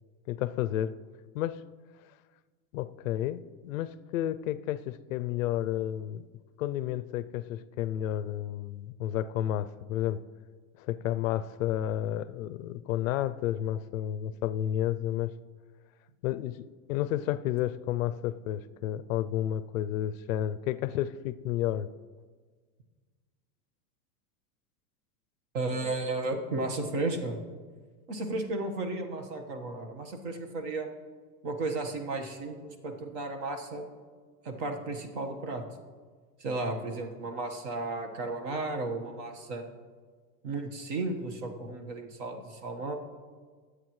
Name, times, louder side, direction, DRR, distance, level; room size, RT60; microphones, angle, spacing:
voice 1, 0.3-0.9 1.3-1.6 2.7-6.3 6.6-10.2 10.8-15.3 16.2-16.6 16.9-21.9, left 12 dB, 60° left, 14 dB, 0.5 m, -31 dB
voice 2, 25.5-27.4 28.1-30.9 31.4-33.8 34.4-35.6 36.4-39.6 40.4-43.0, right 2 dB, 50° right, 5 dB, 1.5 m, -34 dB
21.5 x 8.0 x 3.1 m, 1.5 s
supercardioid pair, 170°, 47 cm